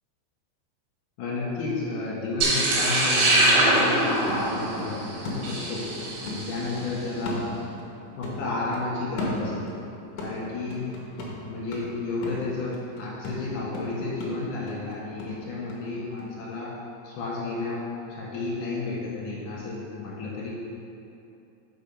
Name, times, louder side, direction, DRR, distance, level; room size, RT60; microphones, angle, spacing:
voice 1, 1.2-5.8 6.2-7.4 8.2-9.7 10.2-10.9 11.5-16.7 17.0-17.8 18.2-20.5, left 3 dB, 65° left, -6 dB, 2.3 m, -32 dB
sound 1, 2.3-2.4 2.8-5.9 6.3-8.0 8.2-9.8 10.2-15.8 16.2-16.3, left 2 dB, 80° left, 1.9 m, -36 dB
sound 2, 2.4-6.7, right 1 dB, 90° right, 4.1 m, -23 dB
6.3 x 5.5 x 5.5 m, 2.8 s
omnidirectional pair, 5.3 m